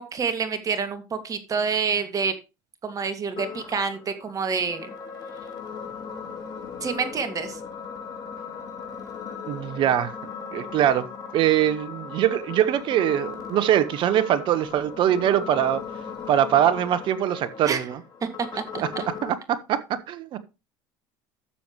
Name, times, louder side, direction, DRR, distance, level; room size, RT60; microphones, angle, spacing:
voice 1, 0.0-2.3 2.8-4.9 6.8-7.6 17.6-17.8 19.0-19.1, right 5 dB, 35° right, 2.2 m, -27 dB
sound 1, 3.4-19.4, left 6 dB, 40° left, 3.2 m, -38 dB
voice 2, 9.5-10.1 10.5-11.1 11.3-15.8 16.3-18.0 19.2-19.8 20.1-20.4, right 11 dB, 55° right, 1.3 m, -22 dB
12.5 x 7.3 x 3.2 m
hypercardioid pair, 85°, 10 cm